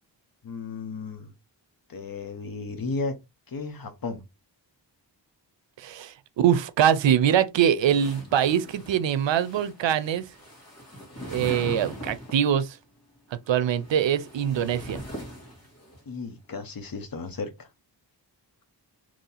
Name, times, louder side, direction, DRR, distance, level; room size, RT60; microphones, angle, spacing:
voice 1, 0.4-1.3 1.9-3.2 3.5-4.2 16.1-17.7, left 3 dB, 50° left, 0.9 m, -34 dB
voice 2, 5.8-10.3 11.3-12.8 13.5-15.0, right 9 dB, 80° right, 0.5 m, -23 dB
sound 1, 7.9-12.5 13.5-16.0, equal, 35° left, 1.7 m, -41 dB
3.0 x 2.7 x 3.9 m
wide cardioid pair, 85°, 44 cm